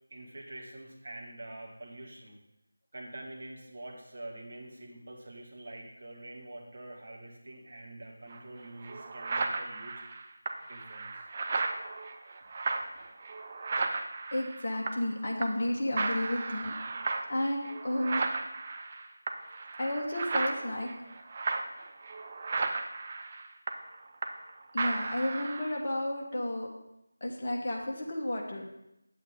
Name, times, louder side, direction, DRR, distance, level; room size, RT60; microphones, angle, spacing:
voice 1, 0.1-2.4 2.9-10.0 10.7-11.3, right 1 dB, 45° right, -1 dB, 2.0 m, -46 dB
sound 1, 8.3-8.4 8.8-15.1 15.4-15.7 16.0-24.5 24.8-25.8, right 3 dB, 30° right, 0.6 m, -35 dB
voice 2, 14.3-16.7 17.3-18.3 19.8-20.9 24.7-26.7 27.2-28.6, left 1 dB, 35° left, -2 dB, 1.6 m, -32 dB
8.7 x 8.2 x 3.9 m, 0.87 s
figure-of-eight pair, 165°, 0 cm